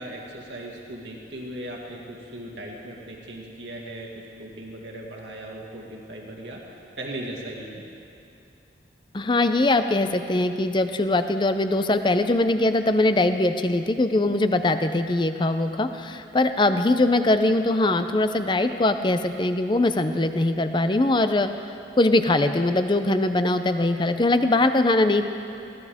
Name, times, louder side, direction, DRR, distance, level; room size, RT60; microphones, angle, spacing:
voice 1, 0.0-6.6 7.0-7.8, right 1 dB, 80° right, -2 dB, 2.2 m, -38 dB
voice 2, 9.1-21.5 22.0-25.2, left 2 dB, 25° left, 9 dB, 0.6 m, -21 dB
21.0 x 16.5 x 3.6 m, 2.7 s
head